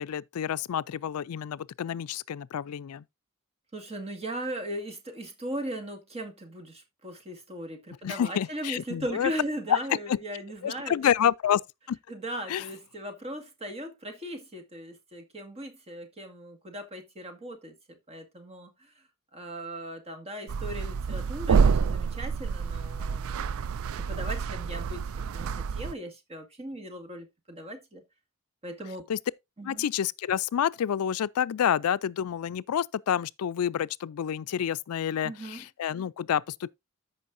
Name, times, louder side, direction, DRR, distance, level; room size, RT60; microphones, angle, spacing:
voice 1, 0.0-3.0 8.0-9.3 9.7-9.8 10.1-10.2 10.6-11.6 11.9-12.0 12.5-12.6 29.1-29.2 29.6-36.7, left 9 dB, 85° left, 0.4 m, -28 dB
voice 2, 3.7-11.1 12.1-18.9 19.3-25.0 25.3-28.0 28.6-29.1 29.6-29.9 35.2-35.7, right 1 dB, 30° right, 1.9 m, -38 dB
sound 1, 20.5-25.9, right 5 dB, 70° right, 0.4 m, -28 dB
14.0 x 5.5 x 2.6 m
head